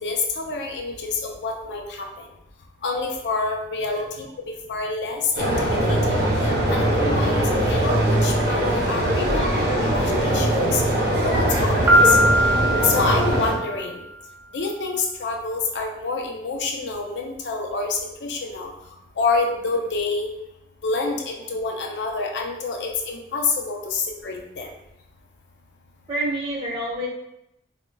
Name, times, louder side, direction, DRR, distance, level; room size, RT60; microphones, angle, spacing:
voice 1, 0.0-2.3 2.8-9.5 9.8-10.8 11.2-12.2 12.8-14.0 14.5-18.7 19.2-20.3 20.8-24.7, left 3 dB, 80° left, 1 dB, 0.5 m, -27 dB
sound 1, 5.4-13.5, right 1 dB, 60° right, 0.8 m, -21 dB
Piano, 11.9-13.8, equal, 10° right, 0.3 m, -19 dB
voice 2, 26.1-27.1, right 1 dB, 35° right, -4 dB, 1.1 m, -28 dB
4.2 x 2.1 x 2.2 m, 0.84 s
head